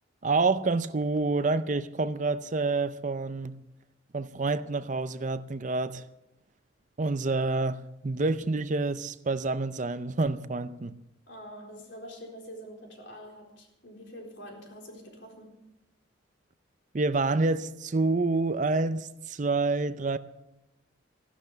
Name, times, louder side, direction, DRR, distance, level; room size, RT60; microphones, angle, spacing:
voice 1, 0.2-3.6 4.1-6.0 7.0-10.9 16.9-20.2, right 3 dB, 40° right, 0.6 m, -28 dB
voice 2, 11.3-15.6, equal, 60° left, 4.1 m, -45 dB
15.5 x 12.0 x 7.1 m
head